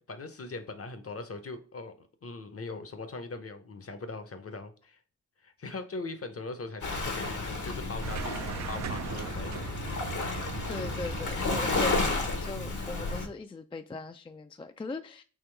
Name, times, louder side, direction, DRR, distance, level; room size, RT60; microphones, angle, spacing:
voice 1, 0.0-1.9 2.2-5.0 5.4-8.4 8.7-9.7, left 3 dB, 45° left, 0.8 m, -40 dB
Waves surf, 6.8-13.3, left 3 dB, 70° left, 1.1 m, -32 dB
sound 1, 8.0-12.7, right 8 dB, 60° right, 0.4 m, -40 dB
voice 2, 10.7-15.2, left 3 dB, 15° left, 0.3 m, -39 dB
3.6 x 3.0 x 4.5 m
cardioid pair, 60°, 32 cm